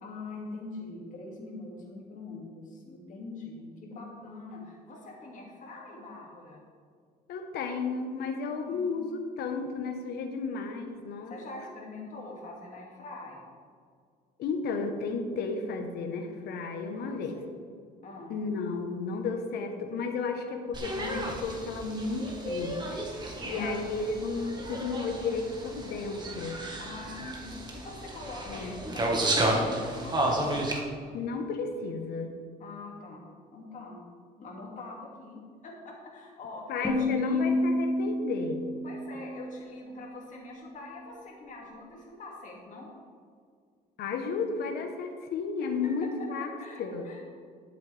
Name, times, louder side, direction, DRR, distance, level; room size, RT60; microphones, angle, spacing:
voice 1, 0.0-6.6 8.5-9.0 11.3-13.4 16.9-17.5 18.0-18.3 23.4-23.7 26.8-30.9 32.6-33.2 33.5-34.0 34.4-37.6 38.8-42.9 46.6-47.2, left 3 dB, 50° left, -2 dB, 2.5 m, -44 dB
voice 2, 7.3-11.3 14.4-17.4 18.3-23.0 23.5-26.6 28.5-28.9 31.1-32.4 36.7-38.7 44.0-47.1, left 4 dB, 75° left, 5 dB, 1.2 m, -33 dB
sound 1, 20.7-30.8, right 1 dB, 25° right, 1.7 m, -32 dB
sound 2, 36.8-39.8, left 1 dB, 5° left, 1.9 m, -29 dB
12.0 x 7.5 x 3.5 m, 2.1 s
cardioid pair, 110°, 17 cm